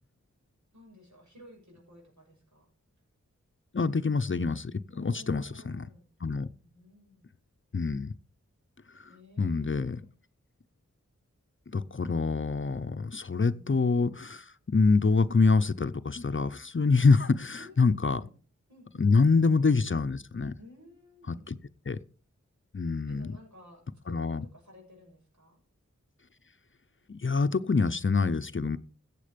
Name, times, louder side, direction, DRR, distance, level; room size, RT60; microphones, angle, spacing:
voice 1, 0.7-2.7 4.9-6.0 6.6-7.3 9.1-10.2 17.5-17.8 18.1-18.3 18.7-19.3 20.6-21.5 23.1-25.6, left 1 dB, 75° right, 0 dB, 7.2 m, -54 dB
voice 2, 3.7-5.8 6.2-6.5 7.7-8.1 9.0-9.1 9.4-10.0 11.7-18.2 19.0-20.5 21.3-21.6 21.9-22.0 22.7-23.3 24.1-24.4 27.1-28.8, left 4 dB, 45° left, 12 dB, 0.7 m, -26 dB
15.5 x 8.4 x 5.2 m, 0.40 s
wide cardioid pair, 60°, 29 cm